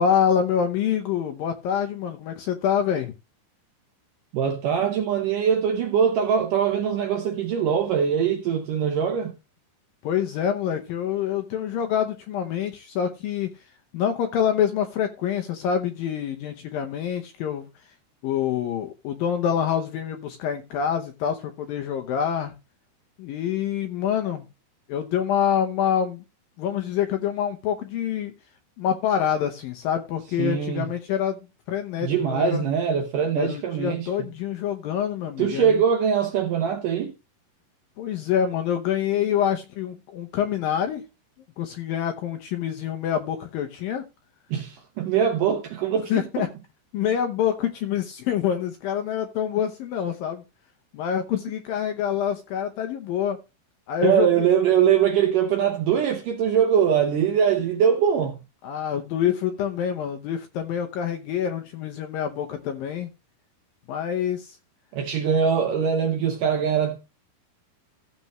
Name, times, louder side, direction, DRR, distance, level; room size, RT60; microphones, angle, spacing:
voice 1, 0.0-3.1 10.0-17.7 18.2-22.5 23.2-24.4 24.9-26.2 26.6-28.3 28.8-31.4 31.7-32.7 33.4-35.8 38.0-41.0 41.6-44.1 46.1-46.5 46.9-50.4 50.9-53.4 53.9-54.5 58.6-63.1 63.9-64.6, left 9 dB, 70° left, 2.3 m, -26 dB
voice 2, 4.3-9.3 30.4-30.9 32.0-34.1 35.4-37.1 44.5-46.5 54.0-58.4 64.9-67.0, right 8 dB, 70° right, 2.2 m, -22 dB
15.0 x 6.9 x 3.1 m
omnidirectional pair, 5.0 m